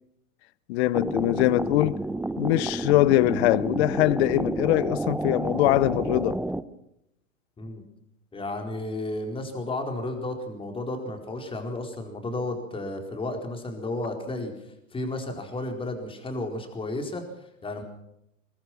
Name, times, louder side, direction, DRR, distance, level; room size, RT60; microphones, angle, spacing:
voice 1, 0.7-2.0 2.4-6.4, left 17 dB, 50° left, 0.7 m, -22 dB
sound 1, 0.9-6.6, right 2 dB, 5° right, 0.7 m, -30 dB
voice 2, 8.3-14.5 14.9-17.8, left 2 dB, 15° left, 4.4 m, -33 dB
22.5 x 19.0 x 6.1 m
hypercardioid pair, 125°, 41 cm